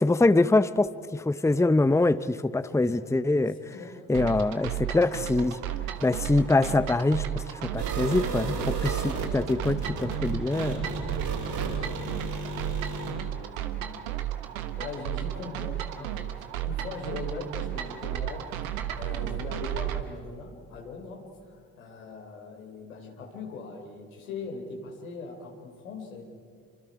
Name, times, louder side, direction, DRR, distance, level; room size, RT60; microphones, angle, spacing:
voice 1, 0.0-3.6 4.1-5.6 6.0-7.2 7.7-10.9, left 2 dB, 5° left, 14 dB, 0.8 m, -24 dB
voice 2, 2.7-3.1 3.5-4.1 8.7-9.0 10.2-10.3 10.9-14.3 14.8-18.5 19.0-26.3, left 4 dB, 90° left, 1 dB, 3.6 m, -41 dB
sound 1, 4.1-20.0, right 12 dB, 85° right, 1.3 m, -34 dB
sound 2, 7.8-13.1, right 4 dB, 55° right, 7.1 m, -33 dB
28.5 x 25.5 x 4.8 m, 2.2 s
hypercardioid pair, 45°, 40 cm